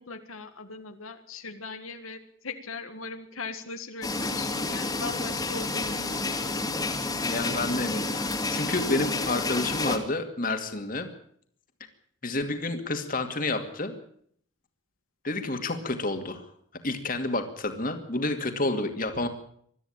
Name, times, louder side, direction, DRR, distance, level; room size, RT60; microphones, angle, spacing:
voice 1, 0.0-6.4, left 4 dB, 85° left, 6 dB, 1.9 m, -39 dB
sound 1, 4.0-10.0, left 3 dB, 20° left, 2.4 m, -30 dB
voice 2, 7.3-11.1 12.2-13.9 15.2-16.4 16.8-19.3, left 2 dB, 40° left, 6 dB, 2.4 m, -29 dB
22.0 x 13.5 x 8.9 m, 0.65 s
head